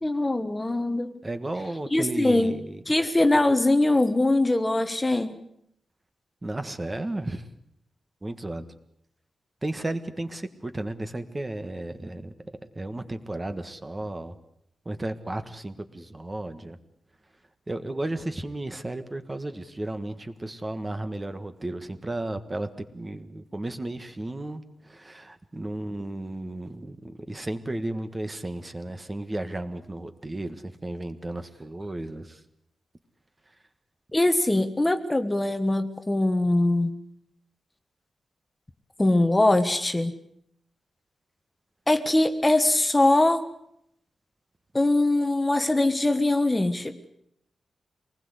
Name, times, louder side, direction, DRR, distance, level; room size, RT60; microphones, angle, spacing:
voice 1, 0.0-1.1 1.9-5.4 34.1-36.9 39.0-40.1 41.9-43.4 44.7-47.0, left 2 dB, 15° left, 9 dB, 1.3 m, -22 dB
voice 2, 1.2-2.8 6.4-7.4 8.2-8.6 9.6-12.3 12.7-14.3 14.8-16.8 17.7-32.4, right 1 dB, 20° right, 9 dB, 1.5 m, -34 dB
25.0 x 20.0 x 8.3 m, 0.75 s
wide cardioid pair, 150°, 0 cm